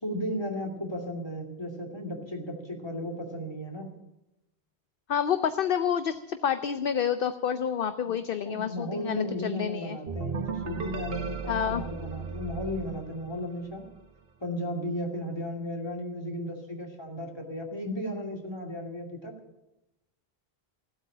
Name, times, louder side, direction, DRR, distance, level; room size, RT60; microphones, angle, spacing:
voice 1, 0.0-3.9 8.0-8.2 8.4-13.9 14.4-19.3, equal, 25° left, 1 dB, 2.6 m, -35 dB
voice 2, 5.1-10.0 11.5-11.8, left 8 dB, 65° left, 11 dB, 0.8 m, -28 dB
sound 1, 10.1-13.8, right 5 dB, 65° right, 1.3 m, -36 dB
16.0 x 8.1 x 10.0 m, 0.93 s
omnidirectional pair, 1.1 m